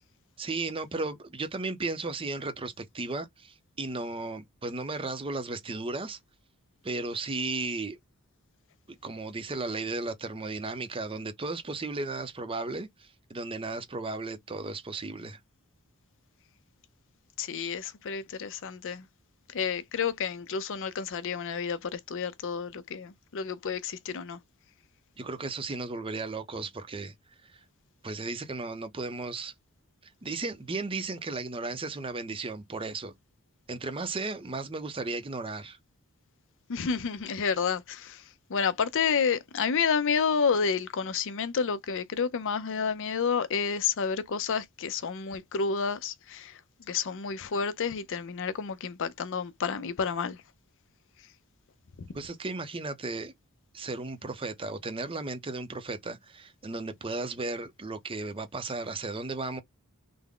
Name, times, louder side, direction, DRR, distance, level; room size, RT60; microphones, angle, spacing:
voice 1, 0.4-6.2 6.8-8.0 9.0-15.4 25.2-27.1 27.5-27.6 28.0-29.5 30.2-33.2 33.7-35.8 52.1-53.3 53.7-59.6, right 3 dB, 25° right, 0.6 m, -35 dB
voice 2, 17.4-19.1 19.5-24.4 36.7-38.2 38.5-46.6 46.9-50.4 52.0-52.2, left 6 dB, 60° left, 0.5 m, -30 dB
3.5 x 2.1 x 3.6 m
head